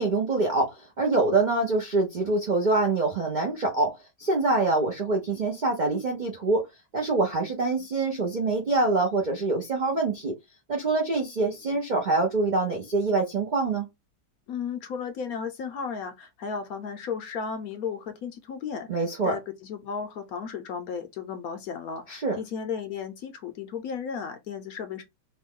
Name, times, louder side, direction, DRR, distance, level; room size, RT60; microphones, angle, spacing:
voice 1, 0.0-3.9 4.2-6.6 6.9-10.3 10.7-13.9 18.9-19.3 22.1-22.4, right 3 dB, 60° right, 0.4 m, -25 dB
voice 2, 14.5-25.0, left 6 dB, 70° left, 0.9 m, -34 dB
3.0 x 2.2 x 3.5 m
omnidirectional pair, 1.9 m